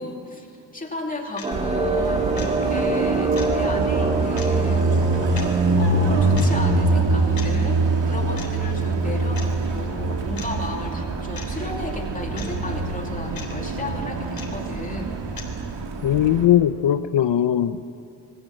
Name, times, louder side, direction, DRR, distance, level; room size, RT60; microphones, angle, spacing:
voice 1, 0.0-15.2, left 1 dB, 20° left, 1 dB, 2.7 m, -34 dB
sound 1, 1.4-1.5 2.4-2.5 3.4-3.5 4.4-4.5 5.4-5.5 6.4-6.5 7.4-7.5 8.4-8.5 9.4-9.5 10.4-10.5 11.4-11.5 12.4-12.5 13.4-13.5 14.4-14.5 15.4-15.5, left 5 dB, 55° left, 3.5 m, -37 dB
sound 2, 1.4-7.2, right 2 dB, 15° right, 2.1 m, -26 dB
Car passing by, 1.5-16.4, right 3 dB, 85° right, 2.6 m, -24 dB
voice 2, 16.0-17.8, left 11 dB, 85° left, 10 dB, 0.8 m, -19 dB
27.0 x 22.0 x 7.9 m, 2.5 s
wide cardioid pair, 180°, 42 cm